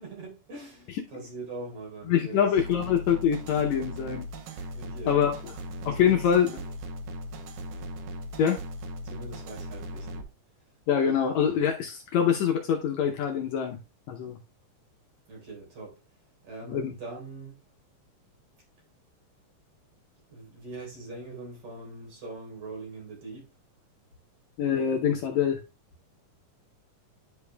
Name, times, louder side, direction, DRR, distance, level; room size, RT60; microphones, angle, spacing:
voice 1, 0.0-2.6 4.7-5.2 5.9-6.3 9.0-10.3 15.3-16.0 16.4-17.6 20.3-23.5, right 2 dB, 60° right, 5.1 m, -42 dB
voice 2, 2.1-4.3 5.1-5.3 5.9-6.5 8.4-8.6 10.9-13.8 14.1-14.4 16.7-16.9 24.6-25.6, left 8 dB, 75° left, 1.8 m, -24 dB
sound 1, 2.6-10.2, equal, 85° right, 2.6 m, -38 dB
10.5 x 5.1 x 2.2 m
omnidirectional pair, 3.9 m